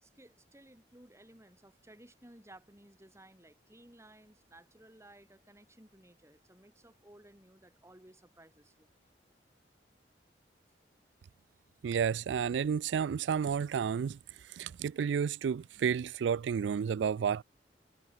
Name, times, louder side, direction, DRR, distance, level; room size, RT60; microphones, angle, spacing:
voice 1, 0.0-8.9, right 1 dB, 15° right, 3.8 m, -58 dB
voice 2, 11.8-17.4, right 7 dB, 85° right, 0.3 m, -31 dB
head